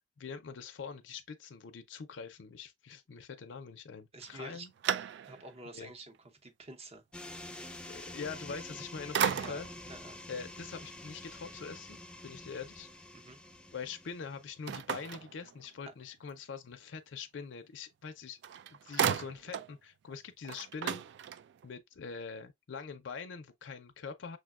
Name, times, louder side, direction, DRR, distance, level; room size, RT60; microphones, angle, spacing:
voice 1, 0.2-4.7 5.7-5.9 7.9-9.7 10.3-12.9 13.7-18.4 18.7-21.1 21.6-24.4, left 5 dB, 70° left, 0.5 m, -44 dB
voice 2, 4.1-4.7 5.3-6.1 6.4-7.0 9.3-9.6 9.9-10.2 13.1-13.4, right 2 dB, 35° right, 0.8 m, -48 dB
sound 1, 4.2-5.6 6.1-6.2 8.5-8.8 9.1-9.9 14.7-15.9 18.0-18.1 18.4-19.7 20.1-20.2 20.4-21.7, right 8 dB, 65° right, 0.3 m, -35 dB
sound 2, 7.1-14.7, left 1 dB, 5° left, 0.4 m, -48 dB
6.3 x 2.2 x 2.3 m
head